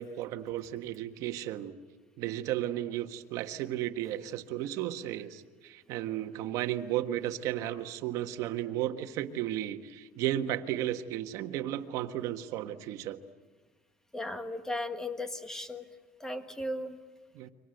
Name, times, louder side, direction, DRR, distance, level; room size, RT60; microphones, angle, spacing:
voice 1, 0.0-1.7 2.2-13.2 17.3-17.5, right 12 dB, 55° right, 7 dB, 1.5 m, -34 dB
voice 2, 14.1-15.8 16.2-17.0, left 1 dB, 10° left, 9 dB, 1.5 m, -36 dB
29.0 x 24.5 x 8.0 m, 1.3 s
cardioid pair, 160°, 7 cm